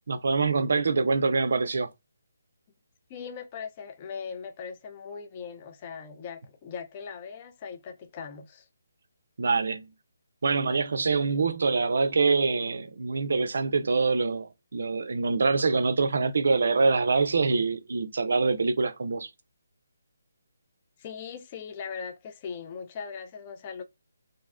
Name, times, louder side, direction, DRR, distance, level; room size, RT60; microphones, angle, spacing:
voice 1, 0.0-1.9 9.4-9.9 10.4-19.3, right 4 dB, 65° right, 0.4 m, -25 dB
voice 2, 3.1-8.7 21.0-23.8, left 6 dB, 25° left, 0.3 m, -39 dB
2.5 x 2.1 x 2.3 m
hypercardioid pair, 160°, 0 cm